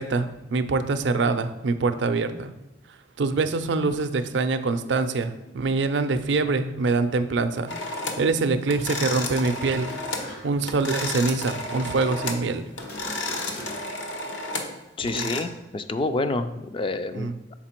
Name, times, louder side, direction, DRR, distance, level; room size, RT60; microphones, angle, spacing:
voice 1, 0.0-2.5 3.2-9.9 10.4-12.6 15.1-15.3 17.1-17.4, right 3 dB, 65° right, 9 dB, 0.5 m, -25 dB
sound 1, 7.7-8.3 8.7-10.3 10.6-12.5 12.8-15.4, left 2 dB, 75° left, 0.8 m, -32 dB
sound 2, 9.9-10.8 11.0-11.1 12.7-14.1, left 1 dB, 55° left, 1.2 m, -42 dB
voice 2, 15.0-17.5, left 2 dB, 25° left, 10 dB, 0.3 m, -28 dB
5.9 x 4.4 x 4.4 m, 1.0 s
head